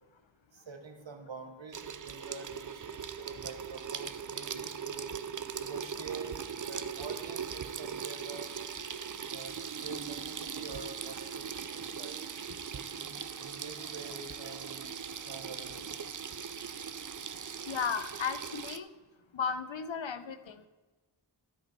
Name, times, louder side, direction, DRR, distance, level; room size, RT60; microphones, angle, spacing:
voice 1, 0.7-5.1 5.6-6.4 6.7-8.6 9.3-12.3 12.7-15.0 15.3-15.9, right 4 dB, 70° right, 6 dB, 1.3 m, -46 dB
Water tap faucet / Sink (filling or washing), 1.7-18.8, right 7 dB, 45° right, 0.5 m, -40 dB
voice 2, 17.7-18.9 19.3-20.7, left 6 dB, 75° left, 11 dB, 0.8 m, -35 dB
12.0 x 5.2 x 4.5 m, 1.2 s
wide cardioid pair, 40°, 46 cm